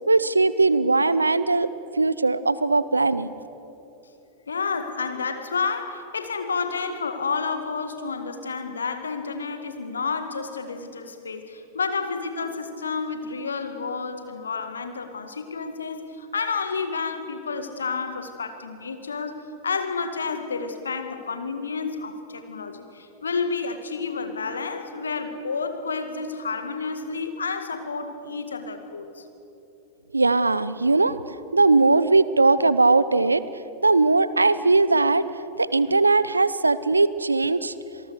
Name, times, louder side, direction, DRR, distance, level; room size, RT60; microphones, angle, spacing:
voice 1, 0.0-1.7 2.0-3.3 30.1-33.4 33.8-35.3 35.6-37.7, right 3 dB, 80° right, 17 dB, 0.7 m, -20 dB
voice 2, 4.5-29.2, left 4 dB, 70° left, 7 dB, 1.9 m, -30 dB
26.5 x 18.5 x 6.6 m, 3.0 s
figure-of-eight pair, 90°, 0 cm